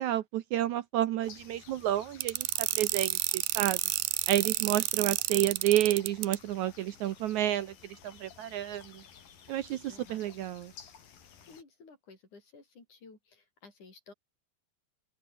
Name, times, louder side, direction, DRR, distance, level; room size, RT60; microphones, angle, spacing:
voice 1, 0.0-3.8 4.3-9.0 9.5-10.7, right 12 dB, 70° right, 2.0 m, -30 dB
sound 1, 1.2-11.6, left 7 dB, 80° left, 4.9 m, -54 dB
sound 2, 2.2-6.4, right 18 dB, 90° right, 2.4 m, -31 dB
voice 2, 9.9-10.2 11.2-14.1, left 4 dB, 60° left, 7.7 m, -54 dB
omnidirectional pair, 4.0 m